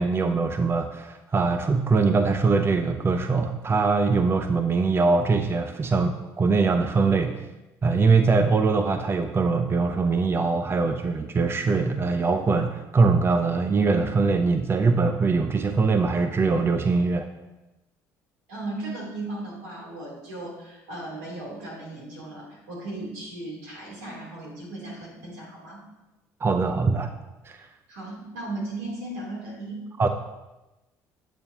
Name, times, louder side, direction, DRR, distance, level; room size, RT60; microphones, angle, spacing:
voice 1, 0.0-7.4 7.8-17.3 26.4-27.1 27.5-27.6 30.0-30.1, right 4 dB, 30° right, 7 dB, 0.6 m, -22 dB
voice 2, 18.5-25.8 27.9-29.8, right 2 dB, 80° right, -3 dB, 3.2 m, -36 dB
8.7 x 8.1 x 2.9 m, 1.0 s
hypercardioid pair, 60°, 8 cm